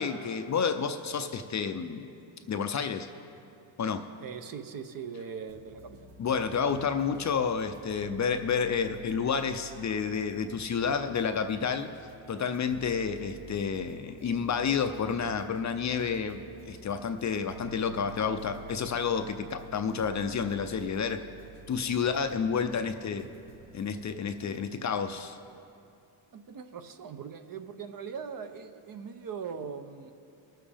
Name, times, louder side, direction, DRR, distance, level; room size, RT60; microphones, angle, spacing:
voice 1, 0.0-2.1 2.5-3.1 3.8-4.0 6.2-11.9 12.3-21.2 21.7-23.3 23.7-25.4, left 6 dB, 35° left, 8 dB, 0.5 m, -30 dB
voice 2, 4.2-6.0 26.3-30.1, right 6 dB, 45° right, 9 dB, 0.7 m, -40 dB
sound 1, 5.5-24.7, right 2 dB, 80° right, 1.6 m, -50 dB
20.0 x 7.4 x 3.4 m, 2.6 s
cardioid pair, 105°, 48 cm